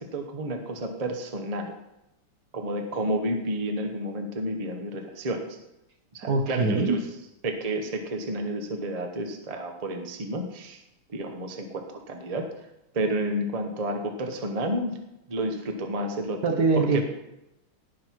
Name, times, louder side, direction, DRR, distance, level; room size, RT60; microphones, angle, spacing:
voice 1, 0.0-1.7 2.5-5.5 6.1-7.0 7.4-10.8 11.1-12.5 12.9-15.0 15.3-16.4 16.8-17.0, right 1 dB, 25° right, 4 dB, 0.9 m, -30 dB
voice 2, 6.2-7.0 16.4-17.0, right 3 dB, 55° right, 4 dB, 1.3 m, -23 dB
17.0 x 5.9 x 4.6 m, 0.88 s
omnidirectional pair, 2.3 m